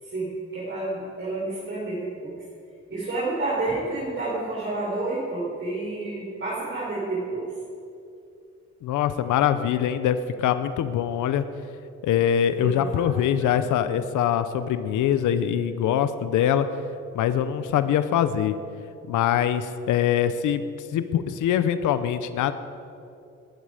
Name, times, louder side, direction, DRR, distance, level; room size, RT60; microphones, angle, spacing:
voice 1, 0.0-2.4 2.9-7.5 12.5-13.1 13.4-13.8, right 2 dB, 40° right, -7 dB, 4.7 m, -30 dB
voice 2, 8.8-11.5 12.0-16.7 17.1-18.6 19.1-20.6 20.9-22.5, left 9 dB, 80° left, 12 dB, 0.8 m, -23 dB
20.0 x 11.5 x 5.0 m, 2.6 s
cardioid pair, 90°, 30 cm